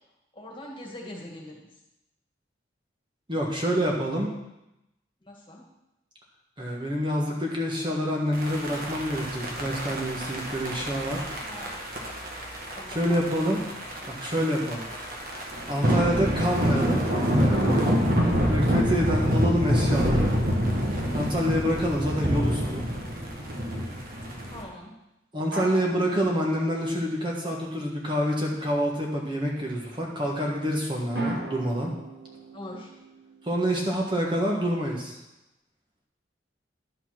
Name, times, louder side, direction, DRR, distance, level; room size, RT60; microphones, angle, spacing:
voice 1, 0.3-1.7 5.2-5.6 11.5-11.8 12.8-13.7 24.5-24.9 32.5-32.9, left 1 dB, 25° left, -2 dB, 1.9 m, -42 dB
voice 2, 3.3-4.4 6.6-11.3 12.9-13.6 14.1-14.9 15.7-17.0 17.3-17.9 18.5-20.3 21.1-22.9 25.3-31.9 33.4-35.2, equal, 25° right, -2 dB, 1.4 m, -27 dB
sound 1, 8.3-24.6, equal, 50° right, 1.7 m, -27 dB
sound 2, 25.5-27.5 31.1-34.2, right 2 dB, 85° right, 3.9 m, -40 dB
11.5 x 5.6 x 6.0 m, 0.90 s
head